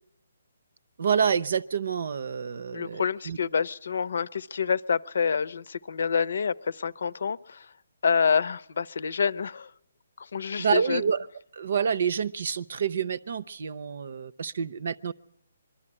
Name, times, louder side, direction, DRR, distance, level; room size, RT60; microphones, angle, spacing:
voice 1, 1.0-3.4 10.6-11.3 11.5-15.1, right 7 dB, 60° right, 19 dB, 0.8 m, -28 dB
voice 2, 2.7-7.7 8.0-9.7 10.2-11.0, left 6 dB, 65° left, 18 dB, 0.7 m, -27 dB
23.0 x 13.0 x 9.9 m, 0.75 s
hypercardioid pair, 155°, 0 cm